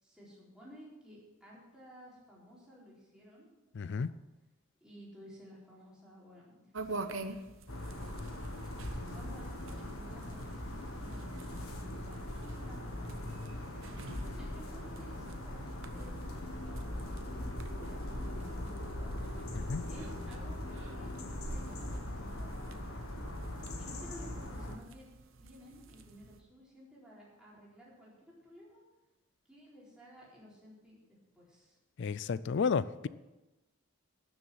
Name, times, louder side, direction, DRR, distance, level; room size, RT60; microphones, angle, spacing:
voice 1, 0.0-3.5 3.7-4.1 4.8-7.4 9.0-19.2 19.9-23.3 23.8-25.1 25.4-28.8 29.5-31.8, equal, 5° right, -7 dB, 4.2 m, -55 dB
voice 2, 3.8-4.1 19.6-19.8 32.0-33.1, left 5 dB, 55° left, 17 dB, 0.4 m, -32 dB
sound 1, 6.7-26.4, right 2 dB, 65° right, 0.9 m, -49 dB
sound 2, 7.7-24.8, left 1 dB, 75° left, 1.6 m, -40 dB
12.5 x 7.0 x 7.2 m, 1.1 s
head